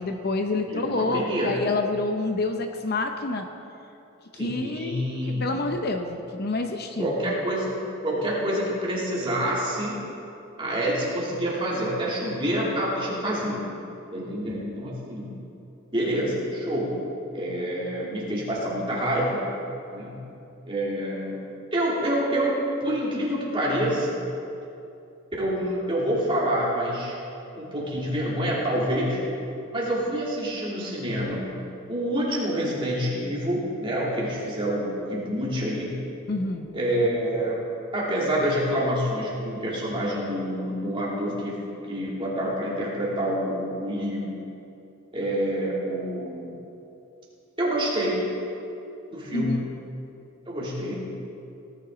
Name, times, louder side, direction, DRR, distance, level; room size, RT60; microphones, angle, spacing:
voice 1, 0.0-3.5 4.3-7.3 36.3-36.7 49.3-49.6, left 2 dB, 45° left, 5 dB, 0.7 m, -28 dB
voice 2, 0.7-1.6 4.3-5.5 7.0-9.9 10.6-13.7 14.1-15.3 15.9-16.9 17.3-19.4 19.9-20.2 20.7-21.4 21.7-24.2 25.4-27.2 27.5-29.2 29.7-31.6 31.9-36.0 36.7-37.6 37.9-41.6 41.9-44.3 45.1-46.4 47.6-48.4 49.1-49.6 50.5-51.1, equal, 25° right, -6 dB, 2.9 m, -27 dB
18.5 x 9.9 x 3.9 m, 2.7 s
head